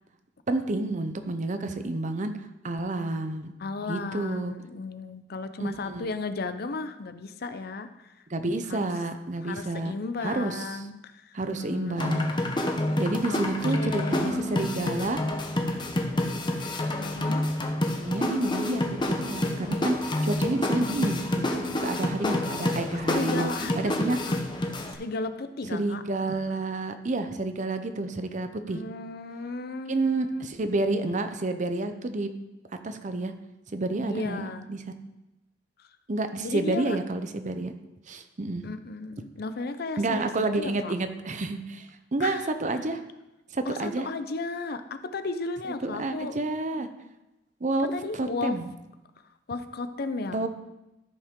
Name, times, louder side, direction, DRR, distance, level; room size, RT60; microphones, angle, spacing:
voice 1, 0.5-2.3 2.6-3.5 3.9-4.5 5.6-6.1 8.3-9.9 10.2-10.7 11.3-12.3 13.0-15.2 18.0-24.2 25.7-28.8 29.9-32.3 32.8-33.3 33.7-34.8 36.1-37.7 38.1-38.6 40.0-43.0 43.5-44.1 45.8-46.9 47.6-48.7 50.3-50.5, right 2 dB, 40° right, 8 dB, 0.7 m, -29 dB
voice 2, 3.6-8.1 8.7-8.9 9.4-12.0 13.3-13.4 13.7-14.5 17.0-17.4 23.1-24.4 24.9-26.0 28.7-30.4 34.1-34.7 35.8-35.9 36.4-37.0 38.6-40.9 42.2-42.5 43.7-46.4 47.9-48.6 49.5-50.4, left 3 dB, 60° left, 10 dB, 0.6 m, -34 dB
sound 1, 12.0-24.9, left 1 dB, 25° left, 0.9 m, -28 dB
13.5 x 5.4 x 3.7 m, 0.98 s
head